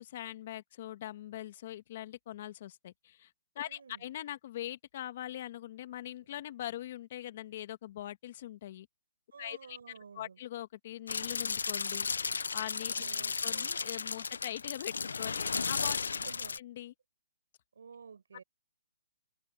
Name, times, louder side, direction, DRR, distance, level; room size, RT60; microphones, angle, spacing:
voice 1, 0.0-8.9 9.4-9.8 10.1-12.1 12.5-13.1 13.4-16.2 16.6-16.9, left 13 dB, 40° left, 1.7 m, -42 dB
voice 2, 3.6-4.0 9.3-10.4 12.9-13.7 16.0-16.6 17.8-18.4, right 6 dB, 75° right, 6.1 m, -51 dB
sound 1, 11.1-16.6, left 5 dB, 85° left, 0.8 m, -34 dB
hypercardioid pair, 160°, 0 cm